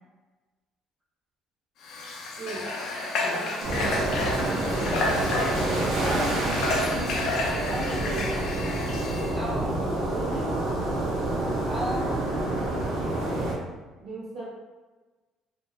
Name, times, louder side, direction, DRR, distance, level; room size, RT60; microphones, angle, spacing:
Water / Water tap faucet, 1.8-9.3, left 2 dB, 55° left, 0.4 m, -30 dB
voice 1, 3.0-4.9 6.1-7.0 7.7-8.3 10.0-10.5 14.0-14.5, right 2 dB, 45° right, -8 dB, 0.9 m, -37 dB
sound 1, 3.6-13.5, right 1 dB, 80° right, 0.6 m, -28 dB
voice 2, 6.0-6.4 6.8-7.1 9.3-9.8 11.7-12.1, right 1 dB, 10° right, -6 dB, 0.4 m, -34 dB
2.6 x 2.2 x 2.3 m, 1.3 s
cardioid pair, 180°, 0 cm